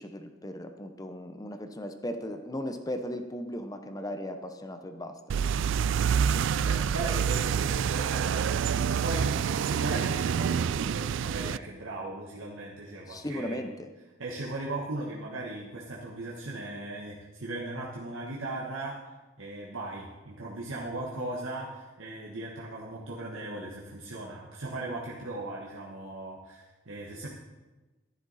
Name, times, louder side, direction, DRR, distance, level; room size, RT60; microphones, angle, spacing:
voice 1, 0.0-5.2 13.1-13.9, left 1 dB, 20° left, 8 dB, 0.7 m, -37 dB
sound 1, 5.3-11.6, right 7 dB, 65° right, 0.3 m, -27 dB
voice 2, 6.5-13.6 14.2-19.0 19.4-27.3, right 2 dB, 85° right, -4 dB, 1.5 m, -38 dB
12.5 x 11.0 x 4.1 m, 1.2 s
head